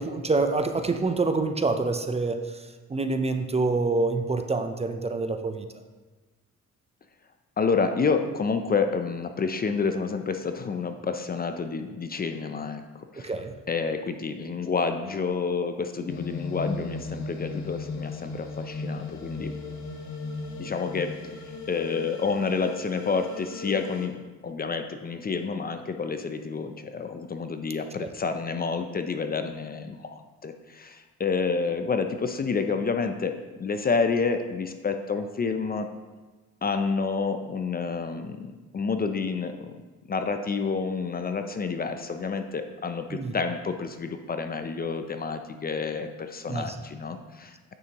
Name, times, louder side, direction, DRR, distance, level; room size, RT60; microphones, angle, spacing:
voice 1, 0.0-2.6 2.9-5.7 13.2-13.5 28.0-28.1 43.1-43.3 46.5-46.8, right 3 dB, 20° right, 7 dB, 0.5 m, -26 dB
voice 2, 7.6-13.3 13.7-19.5 20.6-21.1 21.7-35.9 36.6-39.8 40.1-47.5, left 5 dB, 30° left, 7 dB, 0.5 m, -29 dB
sound 1, 16.1-24.1, left 3 dB, 70° left, 1.0 m, -36 dB
9.3 x 6.2 x 3.0 m, 1.3 s
cardioid pair, 90°, 30 cm